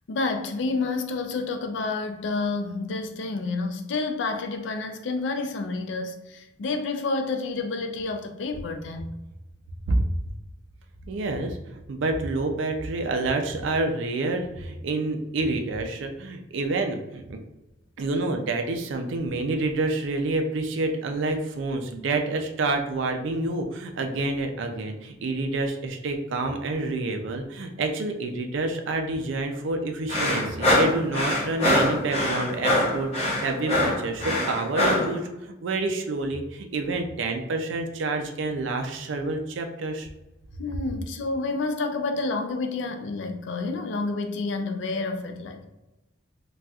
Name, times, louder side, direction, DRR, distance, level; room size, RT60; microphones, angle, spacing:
voice 1, 0.1-9.1 40.6-45.7, left 3 dB, 65° left, 6 dB, 0.4 m, -29 dB
voice 2, 11.1-17.4 18.0-40.1, right 2 dB, 75° right, 4 dB, 0.4 m, -28 dB
sound 1, 30.1-35.1, left 1 dB, 35° left, 0.8 m, -23 dB
4.0 x 2.3 x 2.3 m, 1.0 s
head